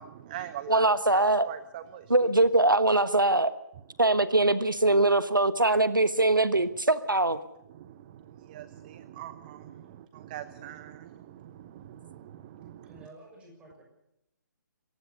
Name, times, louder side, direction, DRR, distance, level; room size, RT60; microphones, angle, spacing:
voice 1, 0.0-2.3 6.5-6.6 7.7-13.1, right 11 dB, 25° right, 14 dB, 0.9 m, -43 dB
voice 2, 0.7-1.5 2.1-3.5 4.0-7.4, right 2 dB, 90° right, 14 dB, 1.3 m, -22 dB
voice 3, 12.8-13.8, right 2 dB, 10° right, 1 dB, 6.4 m, -51 dB
27.0 x 15.0 x 6.9 m, 0.85 s
figure-of-eight pair, 145°, 11 cm